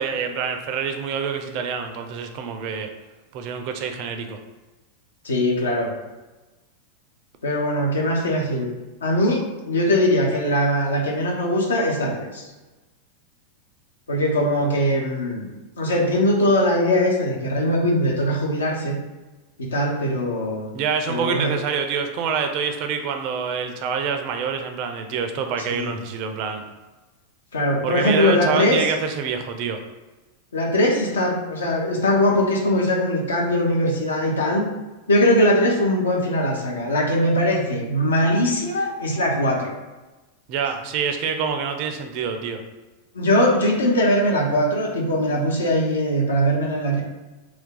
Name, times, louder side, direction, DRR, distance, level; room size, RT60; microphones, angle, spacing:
voice 1, 0.0-2.9 3.3-4.4 20.7-26.6 27.8-29.8 40.5-42.6, right 6 dB, 45° right, 6 dB, 0.4 m, -26 dB
voice 2, 5.2-5.9 7.4-8.7 9.0-12.5 14.1-15.5 15.8-19.0 19.6-20.8 21.1-21.5 25.7-25.9 27.5-28.8 30.5-34.7 35.1-39.7 43.1-47.0, equal, 70° left, 0 dB, 0.6 m, -21 dB
2.5 x 2.3 x 3.7 m, 1.2 s
figure-of-eight pair, 90°, 0 cm